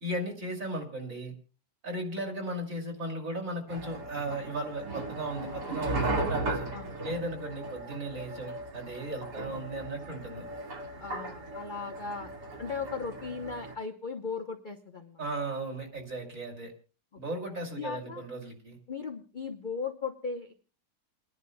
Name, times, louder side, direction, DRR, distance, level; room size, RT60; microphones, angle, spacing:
voice 1, 0.0-1.3 1.8-6.7 7.0-10.4 15.2-16.7 17.2-18.8, right 2 dB, 50° right, 0 dB, 3.0 m, -36 dB
sound 1, 3.7-13.7, right 2 dB, 70° right, 2.6 m, -37 dB
voice 2, 11.0-12.3 12.6-15.2 17.8-18.2 18.9-20.5, left 5 dB, 40° left, 4 dB, 0.7 m, -37 dB
29.5 x 11.0 x 2.2 m, 0.34 s
omnidirectional pair, 1.9 m